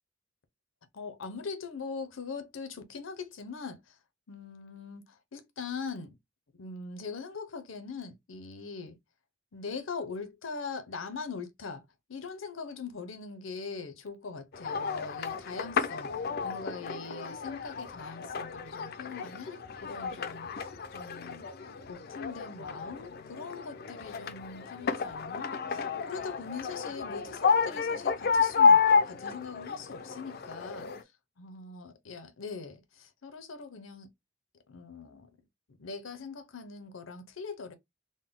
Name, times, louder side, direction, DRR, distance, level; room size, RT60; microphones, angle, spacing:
voice 1, 0.9-4.0 4.3-6.2 6.6-9.0 9.5-11.8 12.1-21.5 21.9-30.9 31.4-34.1 34.7-35.3 35.8-37.7, left 4 dB, 80° left, 0.7 m, -42 dB
sound 1, 14.5-31.0, left 5 dB, 50° left, 0.4 m, -30 dB
3.9 x 2.2 x 3.5 m
head